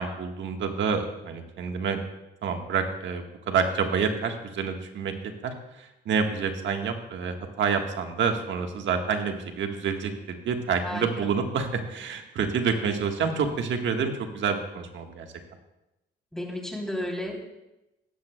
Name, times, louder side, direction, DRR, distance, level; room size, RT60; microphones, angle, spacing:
voice 1, 0.0-2.0 2.4-5.1 5.4-15.3, right 6 dB, 70° right, 4 dB, 1.4 m, -28 dB
voice 2, 16.3-17.4, left 1 dB, 5° left, 0 dB, 3.1 m, -32 dB
16.5 x 12.5 x 2.2 m, 0.94 s
cardioid pair, 90°, 20 cm